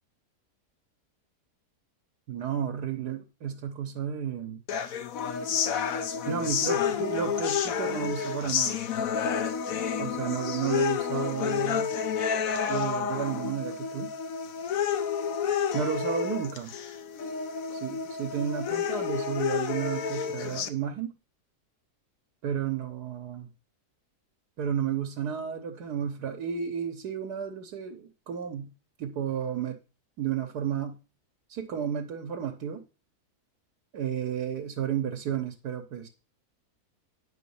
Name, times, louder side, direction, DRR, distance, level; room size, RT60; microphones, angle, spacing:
voice 1, 2.3-4.6 6.3-8.8 10.0-11.9 12.7-14.1 15.7-16.7 17.7-21.1 22.4-23.5 24.6-28.7 29.0-29.8 30.2-31.0 31.5-32.8 33.9-36.1, right 8 dB, 90° right, 1.6 m, -32 dB
sound 1, 4.7-20.7, left 7 dB, 65° left, 1.2 m, -30 dB
9.4 x 4.6 x 7.0 m
omnidirectional pair, 1.7 m